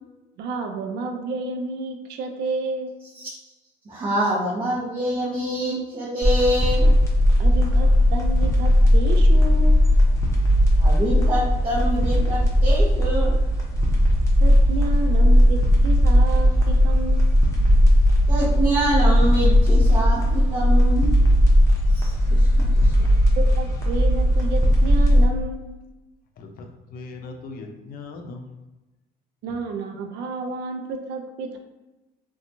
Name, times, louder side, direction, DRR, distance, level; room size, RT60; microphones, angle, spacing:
voice 1, 0.4-2.9 7.4-9.8 14.4-17.3 22.5-22.6 23.0-25.8 29.4-31.6, right 3 dB, 75° right, 4 dB, 0.4 m, -31 dB
voice 2, 3.9-6.9 10.8-13.3 18.3-21.1 21.9-22.9, right 1 dB, 30° right, -6 dB, 0.7 m, -25 dB
sound 1, 6.2-25.3, equal, 15° left, 0.8 m, -17 dB
voice 3, 26.4-28.6, left 3 dB, 60° left, 4 dB, 0.5 m, -39 dB
2.8 x 2.2 x 2.6 m, 1.1 s
cardioid pair, 110°, 17 cm